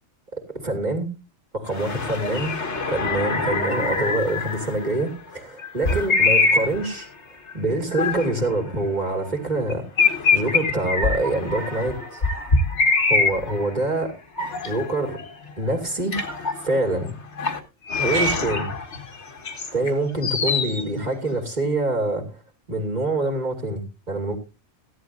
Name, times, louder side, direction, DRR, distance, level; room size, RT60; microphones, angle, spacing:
voice 1, 0.3-1.1 1.5-2.5 2.9-7.1 7.5-12.2 13.0-14.2 14.6-15.2 15.6-16.1 16.6-17.2 18.0-18.7 19.7-22.4 22.7-24.4, right 2 dB, 35° right, 2.6 m, -25 dB
sound 1, 1.7-5.1 5.6-7.0 7.5-8.4 8.7-8.8 9.3-9.4 9.7-13.8 14.4-15.3 15.6-15.8 16.1-17.0 17.4-17.6 17.9-19.9 20.2-20.8, left 3 dB, 70° left, 1.9 m, -24 dB
15.5 x 11.5 x 2.6 m
omnidirectional pair, 1.2 m